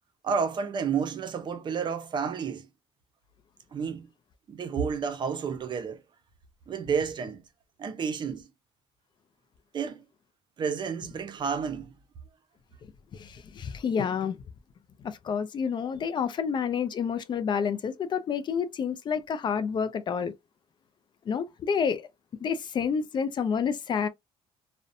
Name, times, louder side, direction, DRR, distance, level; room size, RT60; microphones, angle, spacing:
voice 1, 0.2-2.7 3.7-4.1 4.5-6.0 6.7-7.4 7.8-8.5 9.7-10.1 10.6-11.9, right 6 dB, 45° right, 0.6 m, -30 dB
voice 2, 13.1-14.4 15.0-20.3 21.3-22.0 22.4-24.1, left 6 dB, 45° left, 0.4 m, -29 dB
2.5 x 2.1 x 2.5 m
cardioid pair, 90°, 11 cm